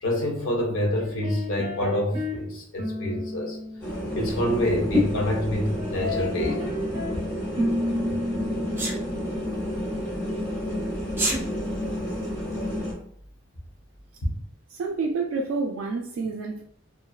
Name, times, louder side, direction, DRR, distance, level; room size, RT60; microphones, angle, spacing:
voice 1, 0.0-3.6 4.1-6.7 14.2-14.3, left 1 dB, 80° left, 0.7 m, -27 dB
sound 1, 1.0-2.4 2.8-5.3 5.8-7.2 7.6-9.5, left 1 dB, 30° right, 0.8 m, -32 dB
sound 2, 3.8-12.9, left 1 dB, 15° left, 0.7 m, -29 dB
Sneeze, 8.8-9.0 11.1-11.4, right 2 dB, 10° right, 0.3 m, -26 dB
voice 2, 14.7-16.6, right 4 dB, 90° right, 0.3 m, -28 dB
2.5 x 2.1 x 2.3 m
head